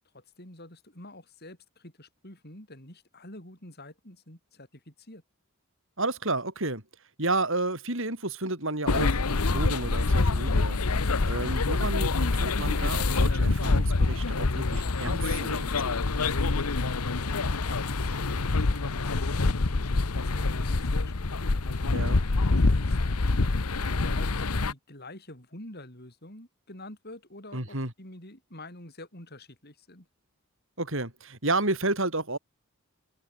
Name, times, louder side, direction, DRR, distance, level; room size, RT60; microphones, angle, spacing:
voice 1, 0.1-5.2 17.2-21.1 21.4-30.1, left 1 dB, 45° left, 7.9 m, -48 dB
voice 2, 6.0-6.8 7.2-10.8 11.2-16.0 21.9-22.2 27.5-27.9 30.8-32.4, right 2 dB, 60° right, 5.8 m, -31 dB
sound 1, 8.9-24.7, left 3 dB, 90° left, 1.1 m, -26 dB
head